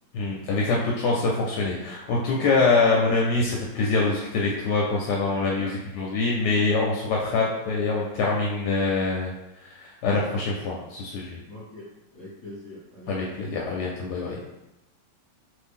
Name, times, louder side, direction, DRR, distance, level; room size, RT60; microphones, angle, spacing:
voice 1, 0.1-5.7 6.0-9.3 9.6-11.4 13.1-14.4, left 3 dB, 75° left, -3 dB, 1.1 m, -24 dB
voice 2, 11.5-13.3, left 1 dB, 25° left, -11 dB, 1.2 m, -43 dB
3.0 x 2.6 x 3.5 m, 0.92 s
omnidirectional pair, 1.9 m